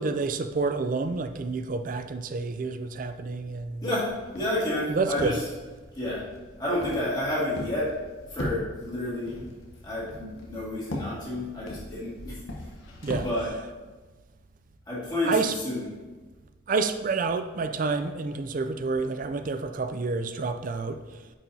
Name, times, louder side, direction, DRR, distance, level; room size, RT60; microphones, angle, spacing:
voice 1, 0.0-3.8 4.9-5.3 13.0-13.3 15.3-15.5 16.7-21.0, right 4 dB, 40° right, 9 dB, 0.4 m, -28 dB
voice 2, 3.8-5.5 6.0-6.2 6.6-7.9 8.3-9.5 9.8-12.4 13.1-13.5 14.9-15.8, left 1 dB, 20° left, -8 dB, 2.0 m, -30 dB
Walk footsteps, 4.1-13.5, left 1 dB, 75° left, 1.1 m, -40 dB
8.9 x 4.8 x 2.8 m, 1.3 s
head